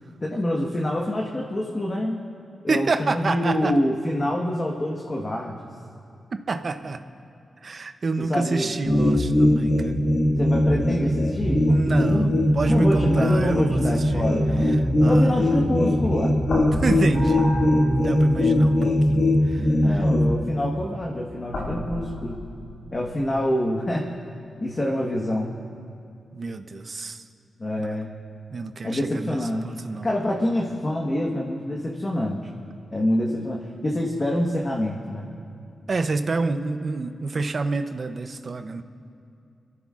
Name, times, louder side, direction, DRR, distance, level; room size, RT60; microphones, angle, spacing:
voice 1, 0.2-2.2 2.6-5.6 8.2-8.7 10.4-12.4 12.7-14.8 15.1-16.3 19.8-22.4 22.9-24.0 24.6-25.6 27.6-28.1 28.8-29.7 30.0-32.4 32.9-35.3, left 1 dB, 30° left, -2 dB, 1.3 m, -26 dB
voice 2, 2.7-3.7 6.3-7.0 7.6-10.0 11.7-14.3 14.7-15.5 16.7-17.5 17.9-20.0 26.3-27.2 27.8-27.9 28.5-30.1 35.9-38.8, right 3 dB, 45° right, 8 dB, 0.6 m, -28 dB
sound 1, 8.8-20.4, left 1 dB, 45° left, 1.7 m, -20 dB
sound 2, 12.6-16.0 16.4-18.9 19.8-20.0 21.5-23.3, left 1 dB, 85° left, 2.7 m, -35 dB
27.5 x 14.5 x 2.5 m, 2.5 s
wide cardioid pair, 125°, 0 cm